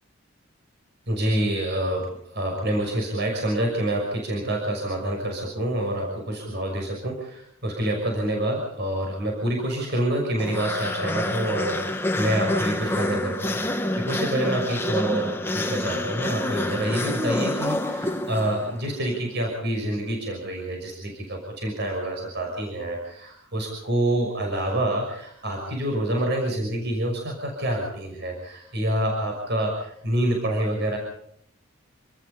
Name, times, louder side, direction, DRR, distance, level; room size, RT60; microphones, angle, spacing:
voice 1, 1.1-31.0, right 1 dB, 55° right, 1 dB, 6.1 m, -27 dB
sound 1, 10.4-18.9, left 1 dB, 10° left, 1.3 m, -27 dB
28.0 x 19.5 x 5.6 m, 0.69 s
head